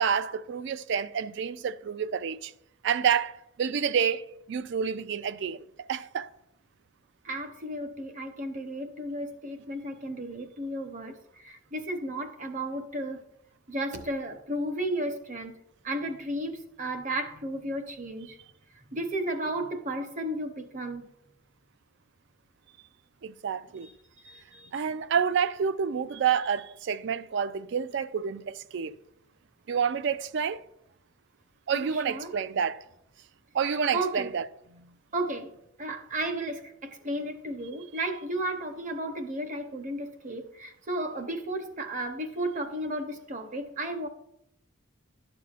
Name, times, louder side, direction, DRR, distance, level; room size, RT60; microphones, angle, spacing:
voice 1, 0.0-2.5 2.8-5.6 5.9-6.3 23.2-23.9 24.7-28.9 29.7-30.6 31.7-32.8 33.5-34.4, right 7 dB, 55° right, 0.3 m, -28 dB
voice 2, 7.2-13.2 13.7-15.5 15.8-18.4 18.7-21.0 23.8-23.9 24.2-24.7 31.7-32.3 33.7-34.3 35.1-35.5 35.8-44.1, right 1 dB, 35° right, 0.8 m, -34 dB
11.5 x 6.9 x 2.4 m
head